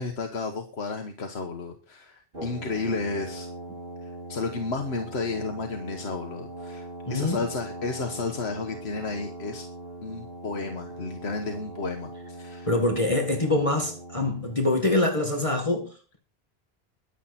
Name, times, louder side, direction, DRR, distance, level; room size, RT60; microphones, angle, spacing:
voice 1, 0.0-3.5 4.0-9.7 10.0-12.7, left 4 dB, 85° left, 5 dB, 1.6 m, -32 dB
Brass instrument, 2.3-14.6, right 1 dB, 65° right, 6.1 m, -41 dB
voice 2, 7.1-7.4 12.7-16.2, left 2 dB, 30° left, 2 dB, 2.2 m, -25 dB
22.0 x 7.6 x 4.3 m, 0.38 s
omnidirectional pair, 1.1 m